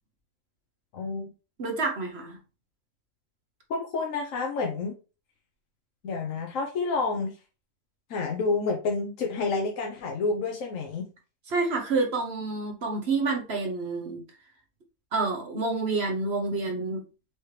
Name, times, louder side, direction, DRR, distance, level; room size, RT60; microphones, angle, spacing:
voice 1, 0.9-1.3 3.7-4.9 6.0-7.3 8.1-11.0, left 4 dB, 75° left, 1 dB, 1.2 m, -29 dB
voice 2, 1.6-2.4 11.5-14.2 15.1-17.0, right 3 dB, 55° right, 2 dB, 1.1 m, -28 dB
4.9 x 3.0 x 3.2 m, 0.32 s
omnidirectional pair, 1.4 m